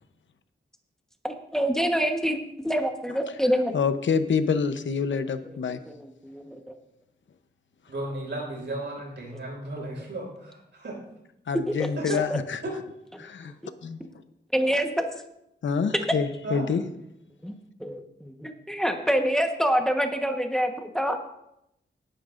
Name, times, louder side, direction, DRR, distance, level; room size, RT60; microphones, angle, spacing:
voice 1, 1.2-3.8 5.9-6.6 14.5-15.1 17.4-17.5 17.8-21.2, equal, 5° left, 4 dB, 1.2 m, -26 dB
voice 2, 3.7-5.8 11.5-12.6 13.2-13.5 13.8-14.0 15.6-16.8, left 6 dB, 85° left, 9 dB, 0.9 m, -26 dB
voice 3, 7.9-11.0 12.0-12.3 12.6-12.7 16.4-16.6, right 2 dB, 75° right, -1 dB, 5.4 m, -34 dB
18.5 x 10.0 x 2.6 m, 0.81 s
wide cardioid pair, 100°, 19 cm